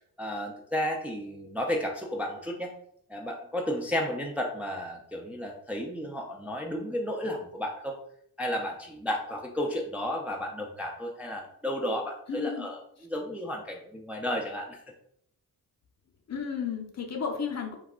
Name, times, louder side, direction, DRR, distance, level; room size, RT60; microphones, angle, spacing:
voice 1, 0.2-2.7 3.1-8.0 8.4-14.8, left 1 dB, 5° right, 0 dB, 0.4 m, -33 dB
voice 2, 12.3-12.7 16.3-17.7, left 6 dB, 40° left, 2 dB, 0.7 m, -33 dB
2.4 x 2.2 x 3.5 m, 0.68 s
cardioid pair, 60°, 39 cm